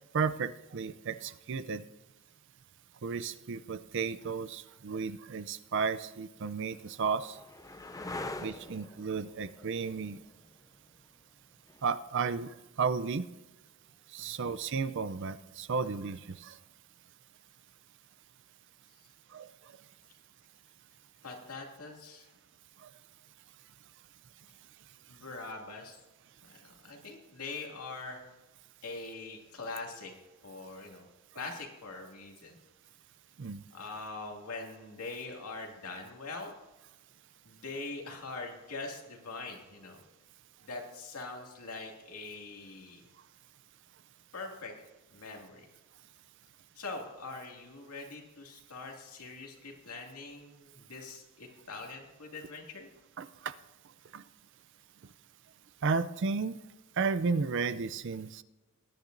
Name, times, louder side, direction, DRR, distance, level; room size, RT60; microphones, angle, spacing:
voice 1, 0.1-1.8 3.0-7.4 8.4-10.2 11.8-13.3 14.1-16.5 19.3-19.5 22.8-22.9 33.4-33.6 53.2-53.5 54.1-54.2 55.8-56.6 57.0-58.4, right 5 dB, 55° right, 14 dB, 0.4 m, -33 dB
sound 1, 4.9-5.0 5.8-13.4 15.8-16.3, left 2 dB, 15° left, 0.4 m, -46 dB
voice 2, 21.2-22.3 25.1-26.0 26.5-28.2 28.8-30.1 30.4-31.1 31.3-32.6 33.7-36.5 37.4-40.0 40.6-43.1 44.3-45.7 46.7-52.9, left 3 dB, 85° left, 0 dB, 2.3 m, -43 dB
19.0 x 10.5 x 2.6 m, 1.1 s
head